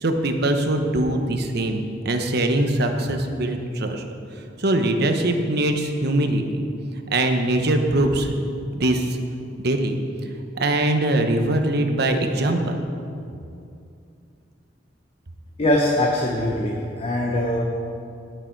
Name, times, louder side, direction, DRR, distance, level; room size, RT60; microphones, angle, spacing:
voice 1, 0.0-4.0 4.6-6.7 7.1-8.5 8.7-9.2 9.6-10.0 10.5-12.8, right 1 dB, 60° right, 5 dB, 1.0 m, -22 dB
voice 2, 15.6-17.6, left 1 dB, 30° left, -1 dB, 1.0 m, -22 dB
17.0 x 6.4 x 4.6 m, 2.5 s
head